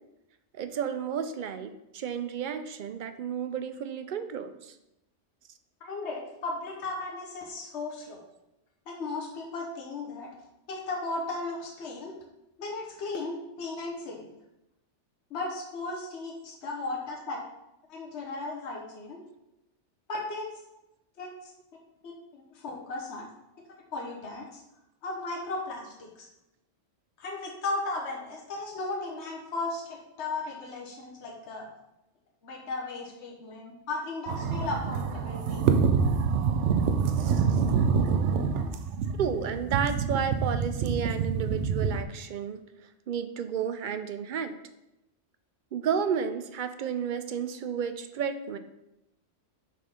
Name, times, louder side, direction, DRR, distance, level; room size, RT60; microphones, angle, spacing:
voice 1, 0.5-4.8 39.2-42.6 43.1-44.6 45.7-48.6, right 7 dB, 60° right, 10 dB, 0.5 m, -32 dB
voice 2, 5.8-8.2 8.9-10.3 10.7-12.1 12.6-14.3 15.3-17.4 17.9-19.2 20.1-20.5 21.2-21.5 22.0-23.3 23.7-24.6 25.0-26.3 27.2-31.7 32.4-35.6, left 3 dB, 70° left, -1 dB, 1.3 m, -36 dB
sound 1, 34.3-42.0, right 6 dB, 75° right, 0.9 m, -26 dB
6.5 x 4.2 x 5.0 m, 0.90 s
omnidirectional pair, 1.2 m